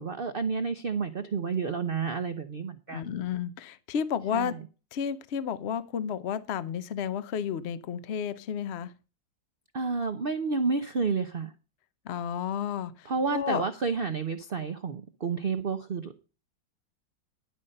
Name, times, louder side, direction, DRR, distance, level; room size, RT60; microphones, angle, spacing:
voice 1, 0.0-3.1 4.3-4.6 9.7-11.5 13.1-16.2, right 5 dB, 50° right, 9 dB, 0.7 m, -30 dB
voice 2, 2.9-4.6 4.9-8.9 12.0-13.6, left 8 dB, 60° left, 14 dB, 0.6 m, -32 dB
11.5 x 5.6 x 6.4 m, 0.32 s
omnidirectional pair, 2.0 m